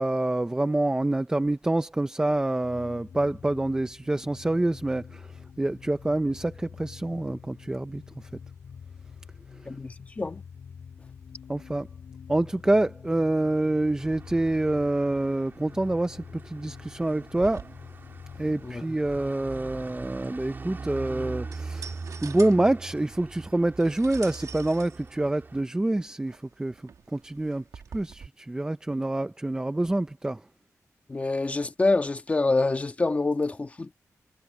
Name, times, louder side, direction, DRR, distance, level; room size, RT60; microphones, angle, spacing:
voice 1, 0.0-8.3 11.5-11.9 12.3-17.6 18.4-21.9 22.2-26.8 27.1-27.6 27.9-30.4, right 2 dB, 10° right, 0.6 m, -26 dB
sound 1, 2.6-18.8, left 6 dB, 85° left, 3.9 m, -46 dB
voice 2, 9.6-10.4 18.6-18.8 31.1-33.9, left 3 dB, 25° left, 1.4 m, -26 dB
sound 2, 14.0-25.6, right 3 dB, 35° right, 3.6 m, -42 dB
sound 3, 17.3-28.3, right 6 dB, 75° right, 1.9 m, -47 dB
wide cardioid pair, 170°, 6 cm